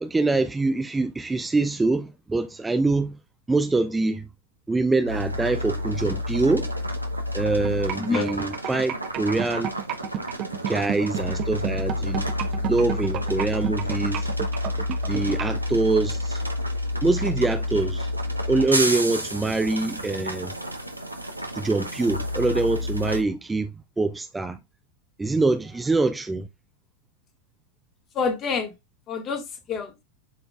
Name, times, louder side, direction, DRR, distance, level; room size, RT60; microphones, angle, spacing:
voice 1, 0.0-3.2 3.5-4.3 4.7-6.7 7.3-9.7 10.7-12.3 12.6-14.3 15.1-16.4 17.0-18.1 18.5-20.5 21.6-23.7 24.0-24.6 25.2-26.5, right 3 dB, 10° right, 0.5 m, -24 dB
sound 1, 5.1-23.2, left 1 dB, 85° right, 1.1 m, -29 dB
sound 2, 7.6-15.6, right 10 dB, 35° right, 1.1 m, -30 dB
voice 2, 8.0-8.3 28.1-28.7 29.1-30.0, left 5 dB, 30° left, 1.8 m, -27 dB
11.5 x 3.9 x 2.4 m
figure-of-eight pair, 90°, 0 cm